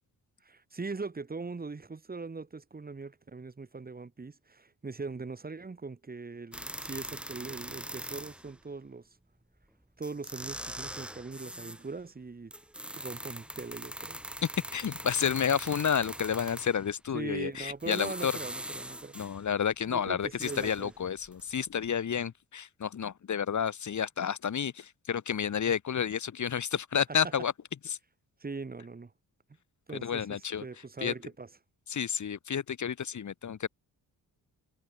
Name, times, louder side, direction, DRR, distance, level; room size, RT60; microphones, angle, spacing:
voice 1, 0.4-9.1 10.0-12.5 12.9-14.2 17.1-19.2 19.9-20.9 28.4-29.1 29.9-31.5, right 4 dB, 25° right, 2.7 m, -41 dB
sound 1, 6.5-8.5 9.6-9.7 10.0-11.9 12.5-16.9 17.7-19.4 19.9-21.5 21.8-21.9, right 1 dB, 5° right, 1.4 m, -42 dB
voice 2, 14.7-18.3 19.1-27.5 27.9-28.0 29.9-30.7 31.0-31.1 31.9-33.7, left 8 dB, 50° left, 2.3 m, -30 dB
wide cardioid pair, 140°, 37 cm